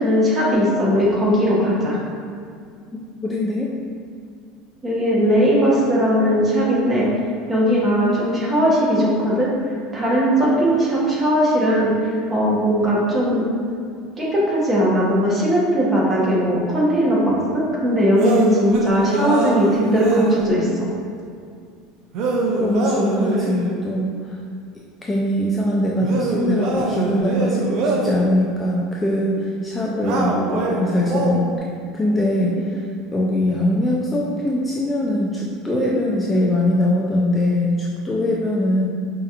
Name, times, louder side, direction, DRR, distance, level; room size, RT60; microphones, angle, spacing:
voice 1, 0.0-2.0 4.8-7.1 7.5-9.5 9.9-13.4 14.2-20.9, equal, 15° right, -6 dB, 1.0 m, -19 dB
voice 2, 3.2-3.7 22.6-24.4 25.0-31.5 31.9-32.8 33.1-38.9, left 1 dB, 15° left, -4 dB, 0.3 m, -22 dB
sound 1, 18.2-20.5 22.1-23.8 26.0-28.3 30.0-31.6, right 3 dB, 55° right, 0.5 m, -23 dB
5.0 x 2.8 x 2.5 m, 2.2 s
supercardioid pair, 130°, 0 cm